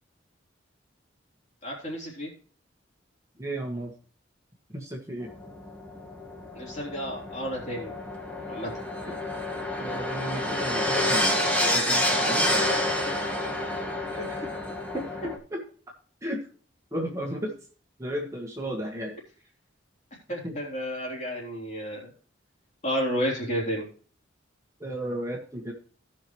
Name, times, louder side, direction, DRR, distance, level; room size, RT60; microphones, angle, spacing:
voice 1, 1.6-2.3 6.6-7.9 8.5-8.7 13.4-13.5 14.2-14.3 20.3-22.1 22.8-23.9, equal, 35° left, -3 dB, 3.5 m, -31 dB
voice 2, 3.4-3.9 4.7-5.3 9.1-9.2 9.8-12.9 14.1-14.6 14.9-15.6 16.2-16.5 16.9-17.5 18.0-19.2 20.4-20.6 24.8-25.7, equal, 15° right, 0 dB, 1.5 m, -34 dB
sound 1, 5.2-15.4, left 1 dB, 5° left, 1.6 m, -28 dB
17.0 x 5.9 x 3.1 m, 0.41 s
head